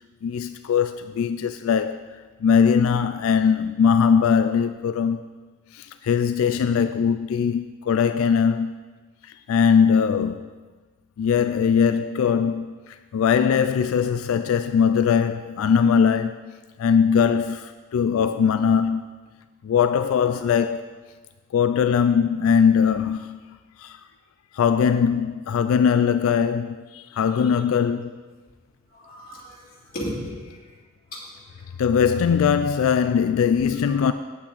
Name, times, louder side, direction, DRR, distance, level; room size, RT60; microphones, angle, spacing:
voice 1, 0.2-5.4 5.7-8.8 9.2-10.5 11.2-16.5 16.8-19.0 19.6-21.0 21.5-23.4 23.8-24.0 24.5-28.2 31.8-34.1, left 7 dB, 70° left, 0.3 m, -21 dB
voice 2, 28.9-30.6 31.1-31.3 33.6-34.1, equal, 40° left, 2.7 m, -36 dB
8.5 x 8.4 x 4.0 m
head